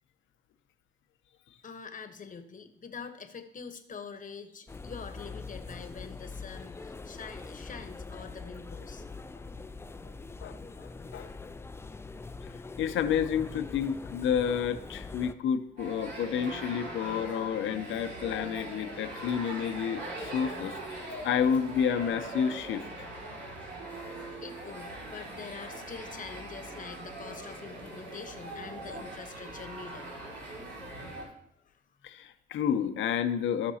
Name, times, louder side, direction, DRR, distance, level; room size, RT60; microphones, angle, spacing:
voice 1, 1.6-9.0 24.4-30.1 31.6-31.8, left 5 dB, 40° left, 8 dB, 1.1 m, -45 dB
minsk unterfhrung, 4.7-15.3, left 3 dB, 10° left, 0.4 m, -43 dB
voice 2, 10.4-11.3 12.8-23.1 32.0-33.7, left 8 dB, 75° left, 9 dB, 0.8 m, -30 dB
sound 1, 15.8-31.2, right 1 dB, 65° right, 4.0 m, -41 dB
15.5 x 6.0 x 2.8 m, 0.74 s
cardioid pair, 90°, 20 cm